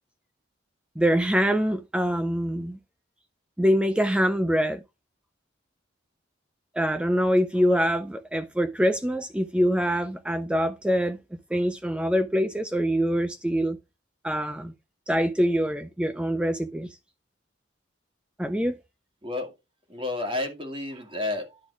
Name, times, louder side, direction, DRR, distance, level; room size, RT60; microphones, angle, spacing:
voice 1, 1.0-2.8 3.6-4.8 6.7-11.2 11.5-13.8 14.2-14.7 15.1-16.9 18.4-18.8, equal, 5° right, 0.4 m, -24 dB
voice 2, 19.2-19.5 19.9-21.6, left 2 dB, 25° right, 2.0 m, -31 dB
10.5 x 4.0 x 4.7 m
head